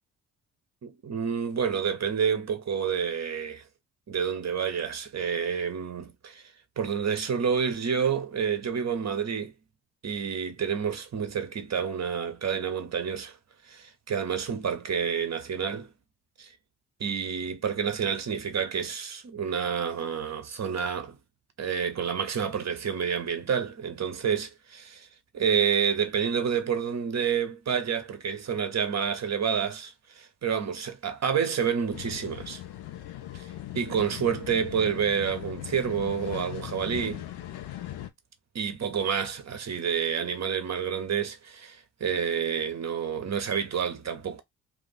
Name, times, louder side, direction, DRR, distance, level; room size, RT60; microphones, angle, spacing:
voice 1, 0.8-3.6 4.1-6.5 6.8-9.5 10.0-13.4 13.7-15.9 16.4-16.5 17.0-21.2 21.6-25.1 25.3-32.6 33.3-33.5 33.7-37.2 38.5-44.4, right 7 dB, 40° right, 1.1 m, -29 dB
sound 1, 31.9-38.1, left 13 dB, 65° left, 0.8 m, -39 dB
2.6 x 2.5 x 4.1 m
hypercardioid pair, 50°, 42 cm